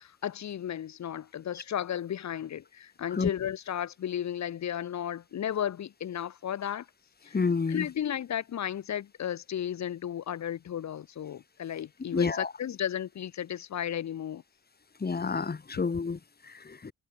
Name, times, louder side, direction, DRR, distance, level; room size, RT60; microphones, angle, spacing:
voice 1, 0.0-6.9 7.2-7.4 7.7-14.4 15.7-15.8, left 10 dB, 65° left, 7.6 m, -34 dB
voice 2, 7.3-7.9 12.1-12.5 15.0-16.9, left 4 dB, 30° left, 7.3 m, -29 dB
cardioid pair, 90°, 30 cm